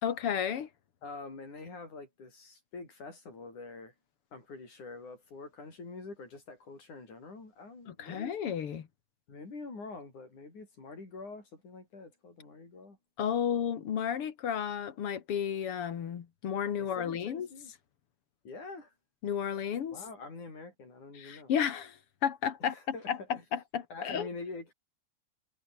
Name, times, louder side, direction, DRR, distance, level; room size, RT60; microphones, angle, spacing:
voice 1, 0.0-0.7 7.9-8.9 13.2-17.5 19.2-20.0 21.2-23.2 23.5-24.3, left 8 dB, 50° left, 2.4 m, -32 dB
voice 2, 1.0-3.9 4.3-8.4 9.3-13.0 16.8-17.7 18.4-18.9 19.9-21.5 22.6-23.4 23.9-24.7, left 3 dB, 80° left, 9.2 m, -45 dB
omnidirectional pair, 3.4 m